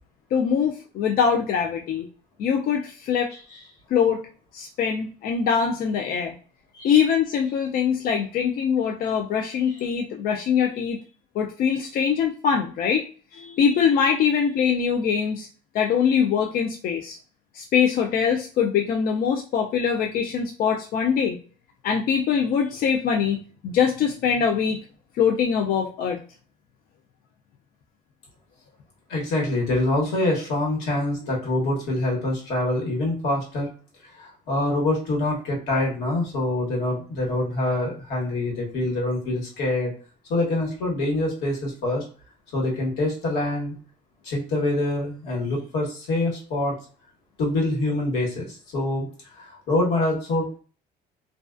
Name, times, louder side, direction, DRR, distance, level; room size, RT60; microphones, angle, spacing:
voice 1, 0.3-2.1 2.4-3.3 3.9-4.2 4.5-6.4 6.8-11.0 11.4-13.1 13.3-15.5 15.7-17.2 17.5-21.4 21.8-24.8 25.2-26.2, left 7 dB, 60° left, 2 dB, 0.4 m, -23 dB
voice 2, 29.1-33.7 34.2-39.9 40.3-42.0 42.5-43.8 44.2-46.7 47.4-49.1 49.4-50.5, left 2 dB, 90° left, -2 dB, 1.2 m, -25 dB
2.3 x 2.3 x 2.4 m, 0.40 s
cardioid pair, 110°, 17 cm